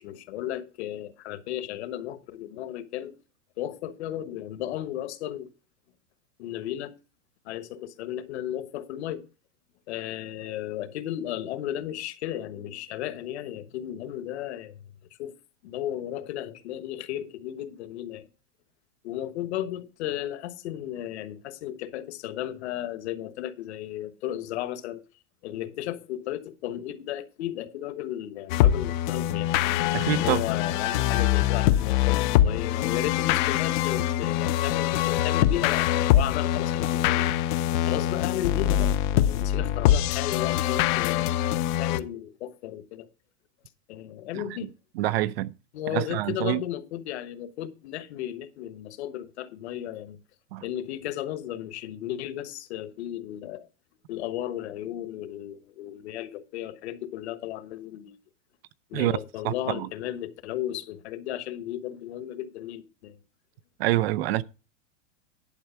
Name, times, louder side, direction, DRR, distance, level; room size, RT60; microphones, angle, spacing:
voice 1, 0.0-3.2 3.6-5.5 6.4-6.9 7.4-9.2 9.9-14.8 15.2-15.4 15.6-18.3 19.0-25.0 25.4-29.5 30.1-37.3 37.9-43.1 43.9-44.7 45.7-50.2 50.6-53.7 54.1-58.2 58.9-63.2, left 12 dB, 60° left, 1.3 m, -34 dB
sound 1, 28.5-42.0, left 12 dB, 40° left, 0.6 m, -24 dB
voice 2, 29.9-30.4 44.3-44.4 45.0-45.5 45.9-46.6 50.5-50.6 58.9-59.2 59.4-59.9 63.8-64.4, right 15 dB, 55° right, 0.6 m, -26 dB
11.0 x 4.5 x 6.9 m
supercardioid pair, 150°, 37 cm